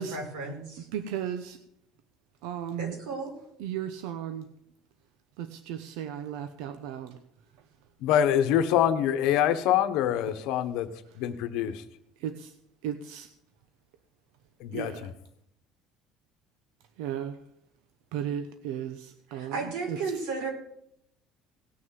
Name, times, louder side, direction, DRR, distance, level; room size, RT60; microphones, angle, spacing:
voice 1, 0.0-0.9 2.8-3.3 19.3-20.5, right 4 dB, 70° right, 5.1 m, -34 dB
voice 2, 0.9-1.6 2.4-2.9 3.6-4.5 5.4-7.2 12.2-12.5 12.8-13.3 14.7-15.1 17.0-17.4 18.1-20.0, right 9 dB, 85° right, 1.0 m, -35 dB
voice 3, 8.0-10.9 11.2-11.8 14.6-14.9, left 10 dB, 60° left, 1.3 m, -25 dB
18.0 x 6.4 x 7.7 m
cardioid pair, 180°, 0 cm